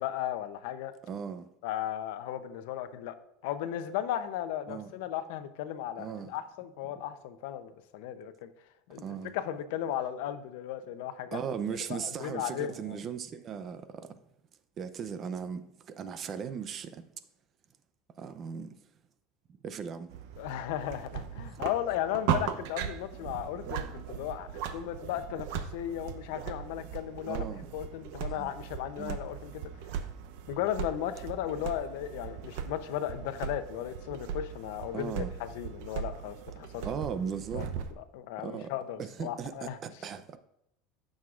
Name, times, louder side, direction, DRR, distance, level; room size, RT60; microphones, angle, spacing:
voice 1, 0.0-0.9 1.6-3.2 3.4-8.5 8.9-11.4 11.9-13.0 20.4-27.5 27.7-29.5 30.5-36.9 37.5-37.7 38.0-39.8, left 11 dB, 75° left, 0.7 m, -35 dB
voice 2, 1.0-1.5 4.7-4.9 6.0-6.4 9.0-9.4 11.3-14.2 14.8-17.1 18.2-18.8 19.6-20.1 23.7-23.9 27.2-27.7 28.4-28.5 29.0-29.2 34.9-35.3 36.8-37.7 38.4-38.7 39.0-40.4, right 7 dB, 35° right, 0.6 m, -38 dB
sound 1, 20.1-37.9, right 8 dB, 75° right, 0.7 m, -38 dB
15.5 x 6.4 x 2.5 m
supercardioid pair, 145°, 0 cm